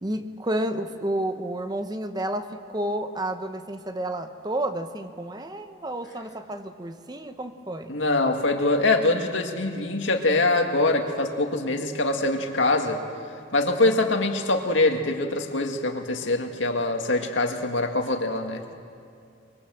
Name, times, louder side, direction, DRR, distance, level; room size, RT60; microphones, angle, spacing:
voice 1, 0.0-7.9, right 1 dB, 20° right, 8 dB, 1.0 m, -30 dB
voice 2, 7.9-13.0 13.5-18.6, left 2 dB, 80° left, 4 dB, 2.1 m, -24 dB
25.0 x 22.5 x 7.8 m, 2.4 s
head